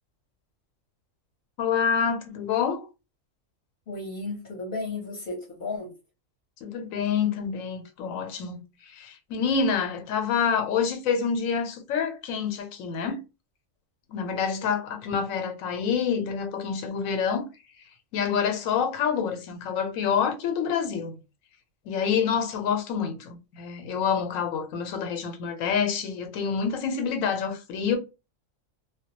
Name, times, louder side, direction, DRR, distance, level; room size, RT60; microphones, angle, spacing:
voice 1, 1.6-2.8 6.6-8.6 8.9-13.2 14.1-17.5 18.1-21.1 21.9-28.0, left 6 dB, 85° left, 1.0 m, -27 dB
voice 2, 3.9-5.9, left 3 dB, 50° left, 0.8 m, -34 dB
2.2 x 2.1 x 2.8 m
omnidirectional pair, 1.4 m